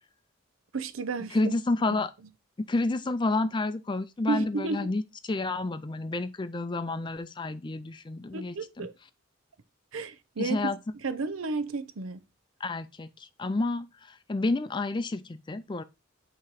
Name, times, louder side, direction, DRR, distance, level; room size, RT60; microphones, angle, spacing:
voice 1, 0.7-1.5 4.3-4.9 8.3-8.9 9.9-12.2, right 4 dB, 75° right, 0.7 m, -32 dB
voice 2, 1.3-2.1 2.7-8.9 10.4-10.8 12.6-13.9 14.3-15.8, left 2 dB, 20° left, 0.4 m, -30 dB
8.3 x 3.0 x 4.8 m
head